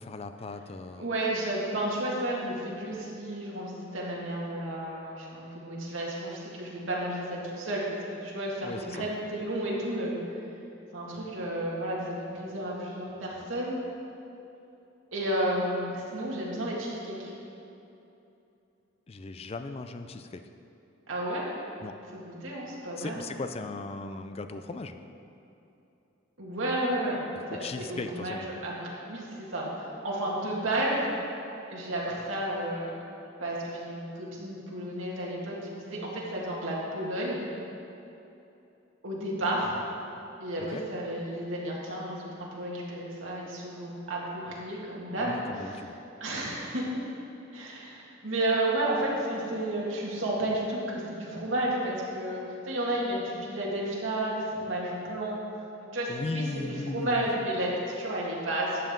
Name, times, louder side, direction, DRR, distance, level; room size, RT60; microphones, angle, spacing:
voice 1, 0.0-1.1 8.6-9.0 19.1-20.4 21.8-21.9 23.0-24.9 27.5-28.6 40.6-40.8 45.2-45.9 56.1-57.3, left 3 dB, 30° left, 8 dB, 0.4 m, -37 dB
voice 2, 1.0-10.1 10.9-13.8 15.1-17.3 21.1-21.5 22.1-23.2 26.4-27.2 27.5-28.7 29.0-31.1 31.7-32.9 33.4-37.4 39.0-39.7 40.4-45.8 46.2-46.9 47.5-55.4 55.8-58.9, right 1 dB, 90° right, -4 dB, 2.0 m, -32 dB
12.0 x 7.6 x 3.8 m, 2.8 s
head